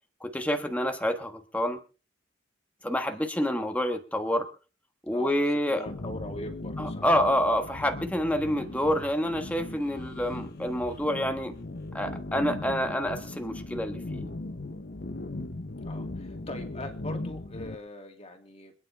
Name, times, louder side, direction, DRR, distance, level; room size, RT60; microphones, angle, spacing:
voice 1, 0.2-1.8 2.8-4.5 5.0-5.8 6.8-11.5 11.9-14.3, equal, 10° left, 5 dB, 1.3 m, -28 dB
voice 2, 5.1-7.2 8.4-8.7 15.8-18.7, left 1 dB, 30° left, 4 dB, 2.6 m, -42 dB
sound 1, 5.9-17.7, left 2 dB, 55° left, 1.0 m, -38 dB
26.5 x 9.9 x 3.5 m, 0.36 s
head